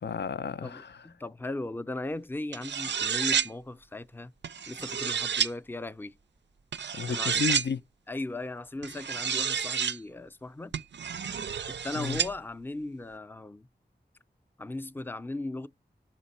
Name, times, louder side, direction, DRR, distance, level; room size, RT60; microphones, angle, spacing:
voice 1, 0.0-1.0 6.9-7.8 12.0-12.2, left 6 dB, 75° left, 0.4 m, -32 dB
voice 2, 0.6-4.3 4.7-6.1 7.1-7.3 8.1-10.7 11.7-13.7 14.6-15.7, left 2 dB, 10° left, 0.4 m, -37 dB
sound 1, 2.5-3.5 4.4-5.5 6.7-7.7 8.8-10.0 10.7-12.3, right 7 dB, 85° right, 0.4 m, -30 dB
5.7 x 5.2 x 4.2 m
wide cardioid pair, 55°, 18 cm